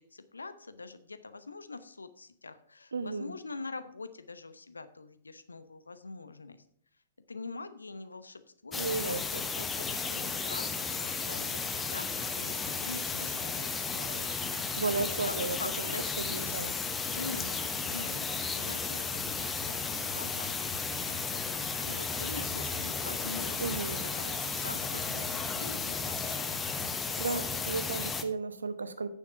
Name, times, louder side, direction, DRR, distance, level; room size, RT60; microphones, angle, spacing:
voice 1, 0.1-6.6 7.3-8.8 9.0-9.2 9.6-11.5 11.9-12.1 12.4-14.4 15.3-16.6 17.1-19.8 20.1-20.5 21.8-23.8 24.2-26.4, left 3 dB, 80° left, 11 dB, 0.9 m, -44 dB
voice 2, 2.9-3.3 8.8-9.7 14.8-16.7 21.9-22.0 23.6-24.0 27.2-29.1, right 4 dB, 75° right, 12 dB, 1.0 m, -34 dB
sound 1, 8.7-28.2, left 4 dB, 15° left, 0.9 m, -34 dB
9.4 x 6.9 x 5.7 m, 0.63 s
figure-of-eight pair, 110°, 0 cm